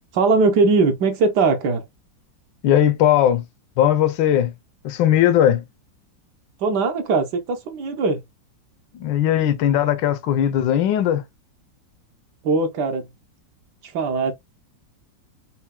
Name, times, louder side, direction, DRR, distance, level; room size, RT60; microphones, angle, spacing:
voice 1, 0.1-1.8 6.6-8.2 12.4-13.1 13.8-14.3, right 4 dB, 70° right, 1.2 m, -20 dB
voice 2, 2.6-3.4 3.8-4.5 4.8-5.6 8.9-11.2, left 11 dB, 75° left, 1.2 m, -18 dB
5.6 x 2.2 x 2.2 m
omnidirectional pair, 2.0 m